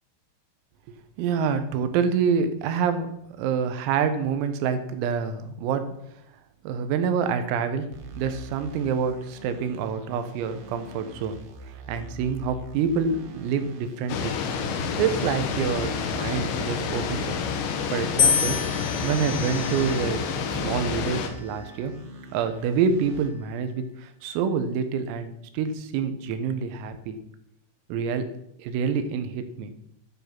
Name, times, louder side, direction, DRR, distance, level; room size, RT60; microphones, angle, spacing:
voice 1, 1.2-3.1 3.4-5.9 6.7-7.9 8.2-11.4 11.9-14.3 15.0-17.4 17.9-21.9 22.3-27.2 27.9-28.3 28.6-29.7, right 6 dB, 90° right, 9 dB, 4.0 m, -27 dB
sound 1, 7.9-23.3, right 3 dB, 65° right, 3.6 m, -44 dB
sound 2, 14.1-21.3, left 6 dB, 70° left, 3.4 m, -29 dB
sound 3, 18.2-20.4 21.2-21.7, left 8 dB, 55° left, 1.5 m, -27 dB
12.0 x 10.0 x 6.0 m, 0.77 s
omnidirectional pair, 5.9 m